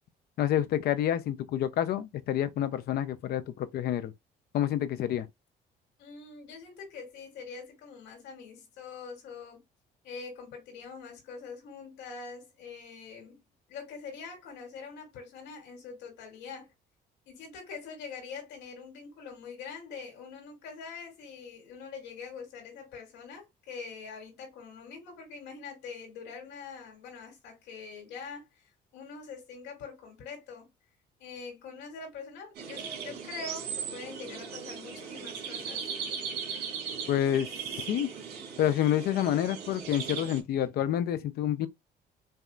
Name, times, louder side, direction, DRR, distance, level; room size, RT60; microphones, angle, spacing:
voice 1, 0.4-4.1 4.5-5.3 37.1-37.5 37.8-38.1 38.6-41.7, left 11 dB, 65° left, 0.7 m, -28 dB
voice 2, 6.0-9.6 10.0-13.4 13.7-16.7 17.3-28.7 28.9-30.7 31.2-35.9, left 5 dB, 85° left, 2.6 m, -44 dB
sound 1, 32.6-40.4, right 7 dB, 70° right, 2.2 m, -38 dB
5.5 x 2.8 x 2.5 m
cardioid pair, 110°, 17 cm